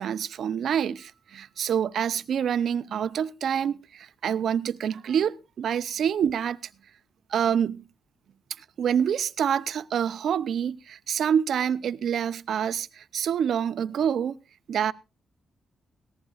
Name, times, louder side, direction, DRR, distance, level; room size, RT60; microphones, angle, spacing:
voice 1, 0.0-6.6 7.3-7.8 8.6-14.4 14.7-14.9, right 8 dB, 65° right, 0.6 m, -27 dB
18.5 x 14.5 x 2.4 m
cardioid pair, 120°, 0 cm